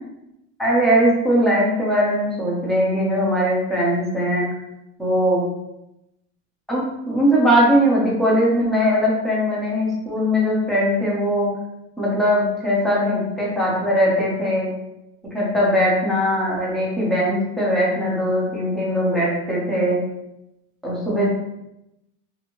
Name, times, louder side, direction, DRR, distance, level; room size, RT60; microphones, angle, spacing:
voice 1, 0.6-4.4 5.0-5.4 6.7-11.5 12.0-14.7 15.3-20.0 20.8-21.3, equal, ahead, -6 dB, 0.6 m, -20 dB
2.7 x 2.7 x 2.9 m, 0.88 s
cardioid pair, 155°, 37 cm